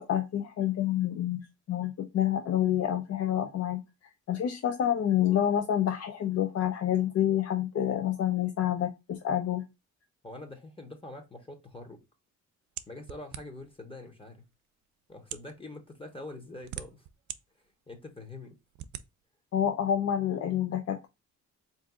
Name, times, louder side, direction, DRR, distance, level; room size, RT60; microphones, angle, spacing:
voice 1, 0.0-1.4 1.7-3.8 4.3-9.6 19.5-21.1, left 10 dB, 55° left, 0.6 m, -28 dB
voice 2, 10.2-12.0 12.9-14.5 15.1-17.0 17.9-18.6, left 2 dB, 20° left, 1.0 m, -44 dB
sound 1, 12.8-13.7 14.5-14.6 15.2-15.5 16.3-17.4 17.9-18.0 18.8-19.1, right 12 dB, 75° right, 0.5 m, -41 dB
3.6 x 2.7 x 3.5 m
cardioid pair, 90°, 30 cm